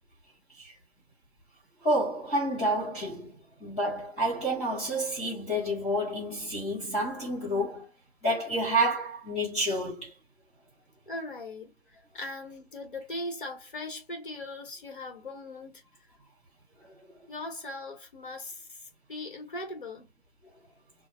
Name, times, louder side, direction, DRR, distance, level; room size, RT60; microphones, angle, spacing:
voice 1, 1.8-7.9 8.2-10.1 16.8-17.0, right 1 dB, 15° left, 2.0 m, -29 dB
voice 2, 11.1-11.8 12.1-15.8 17.3-18.8 19.1-20.1, left 2 dB, 55° left, 1.6 m, -39 dB
6.1 x 2.4 x 2.3 m
hypercardioid pair, 175°, 31 cm